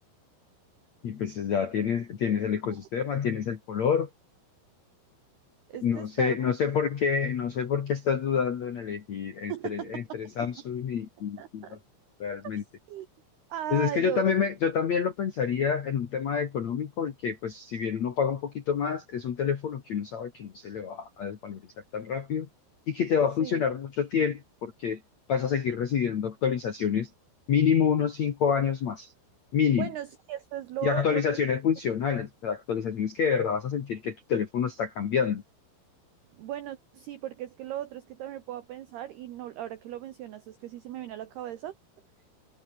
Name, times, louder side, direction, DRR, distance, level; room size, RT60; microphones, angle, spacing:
voice 1, 1.0-4.1 5.8-11.7 12.2-12.6 13.7-21.6 21.9-22.5 22.9-25.0 25.3-27.1 27.5-29.1 29.5-29.9 30.8-35.4, left 7 dB, 60° left, 1.8 m, -28 dB
voice 2, 5.7-6.5 9.5-10.2 11.4-11.8 12.9-13.1 13.5-14.2 23.4-23.6 29.8-31.4 36.4-41.7, right 12 dB, 65° right, 2.7 m, -37 dB
omnidirectional pair, 6.0 m